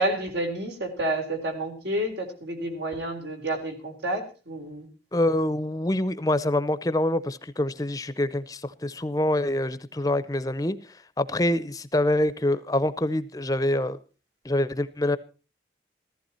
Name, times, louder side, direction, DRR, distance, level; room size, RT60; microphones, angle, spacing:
voice 1, 0.0-4.9, right 1 dB, 80° right, 3.9 m, -29 dB
voice 2, 5.1-10.8 11.2-14.0 14.4-15.2, left 1 dB, 20° left, 0.6 m, -25 dB
15.0 x 14.5 x 4.3 m
head